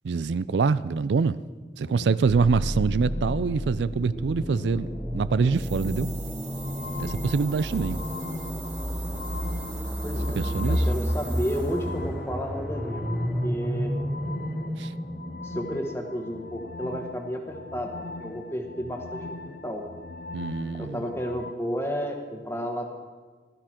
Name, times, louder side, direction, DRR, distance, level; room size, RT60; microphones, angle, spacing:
voice 1, 0.0-1.4 1.8-4.9 5.1-6.1 7.0-8.0 10.4-10.9 14.8-14.9 20.3-21.0, right 5 dB, 85° right, 17 dB, 0.4 m, -25 dB
sound 1, 1.8-21.5, left 3 dB, 55° left, 0.4 m, -41 dB
sound 2, 2.3-16.0, equal, 5° right, 0.8 m, -31 dB
sound 3, 5.5-11.9, right 8 dB, 35° right, 4.0 m, -44 dB
voice 2, 10.0-10.4 10.7-13.0 13.4-13.9 15.4-19.8 20.7-22.9, equal, 15° left, 3 dB, 1.4 m, -32 dB
16.5 x 13.0 x 4.4 m, 1.4 s
head